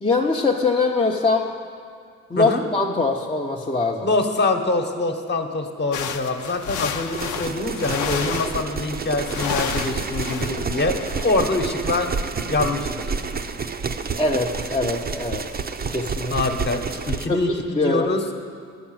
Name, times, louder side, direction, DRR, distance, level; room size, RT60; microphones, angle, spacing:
voice 1, 0.0-1.5 2.3-4.1 14.2-15.5 15.9-16.4 17.3-17.4 17.7-18.1, left 3 dB, 15° left, -1 dB, 0.7 m, -22 dB
voice 2, 4.0-12.1 12.4-13.1 16.3-18.2, left 2 dB, 35° left, 4 dB, 1.2 m, -24 dB
sound 1, 5.9-8.8 9.1-11.5, left 7 dB, 75° left, 0.8 m, -31 dB
sound 2, 7.1-17.3, right 5 dB, 30° right, 0.6 m, -29 dB
11.0 x 5.9 x 8.8 m, 2.2 s
cardioid pair, 90°, 30 cm